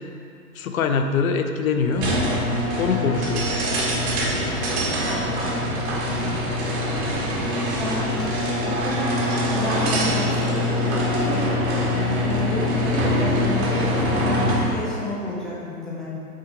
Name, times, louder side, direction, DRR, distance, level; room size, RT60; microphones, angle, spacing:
voice 1, 0.6-2.2 2.7-3.7, left 5 dB, 60° left, 7 dB, 0.7 m, -23 dB
sound 1, 1.9-14.7, left 1 dB, 40° right, 1.5 m, -24 dB
sound 2, 3.1-14.3, right 2 dB, 65° right, 1.4 m, -36 dB
voice 2, 7.7-11.6 11.9-16.1, left 1 dB, ahead, -8 dB, 0.5 m, -31 dB
7.6 x 3.8 x 3.8 m, 2.4 s
hypercardioid pair, 120°, 47 cm